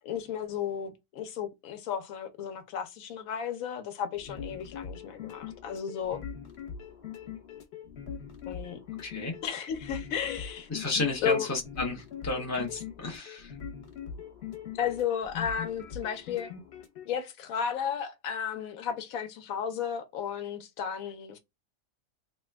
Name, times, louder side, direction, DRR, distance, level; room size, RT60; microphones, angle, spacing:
voice 1, 0.0-6.2 8.5-8.8 9.4-10.7 11.2-11.5 14.7-16.5 17.1-21.4, left 8 dB, 90° left, 1.1 m, -33 dB
sound 1, 4.1-17.1, left 7 dB, 55° left, 0.9 m, -42 dB
voice 2, 9.0-9.3 10.7-13.5, left 3 dB, 25° left, 0.3 m, -32 dB
2.9 x 2.2 x 3.3 m
omnidirectional pair, 1.4 m